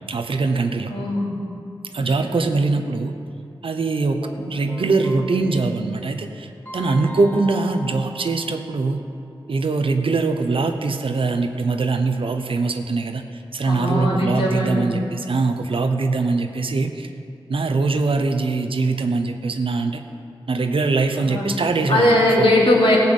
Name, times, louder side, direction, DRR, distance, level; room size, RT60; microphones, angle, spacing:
voice 1, 0.1-0.9 1.9-3.1 3.6-9.0 9.5-17.1 17.5-20.0 20.5-22.5, right 3 dB, 70° right, 7 dB, 1.0 m, -22 dB
voice 2, 0.9-1.3 2.2-2.3 13.7-15.0 21.2-21.5 21.9-23.0, left 1 dB, 75° left, -4 dB, 3.1 m, -19 dB
Keyboard (musical), 4.2-9.2, equal, 20° left, 2.6 m, -39 dB
15.0 x 5.8 x 8.2 m, 2.5 s
cardioid pair, 50°, 9 cm